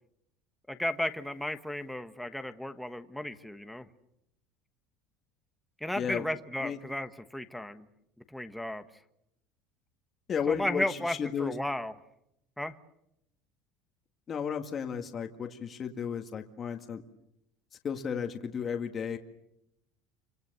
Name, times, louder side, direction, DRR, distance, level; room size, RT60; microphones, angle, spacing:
voice 1, 0.7-3.9 5.8-7.9 8.3-8.8 10.5-11.9 12.6-12.7, left 1 dB, ahead, 8 dB, 1.1 m, -34 dB
voice 2, 6.0-6.3 6.6-6.8 10.3-11.5 14.3-17.0 17.8-19.2, left 7 dB, 30° left, 4 dB, 1.9 m, -33 dB
30.0 x 26.0 x 6.8 m, 0.80 s
cardioid pair, 160°, 0 cm